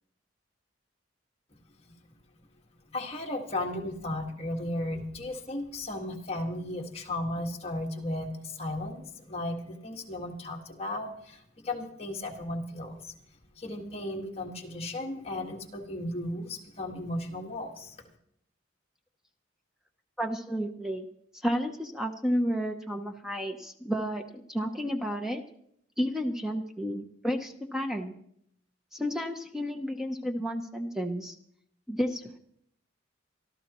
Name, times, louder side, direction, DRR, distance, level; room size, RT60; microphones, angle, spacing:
voice 1, 2.9-13.1 13.5-18.0, left 1 dB, 35° left, 0 dB, 1.7 m, -35 dB
voice 2, 20.2-21.0 21.4-25.4 26.0-28.1 28.9-31.4 31.9-32.4, equal, 5° right, 4 dB, 0.8 m, -31 dB
24.5 x 13.0 x 3.1 m, 0.71 s
head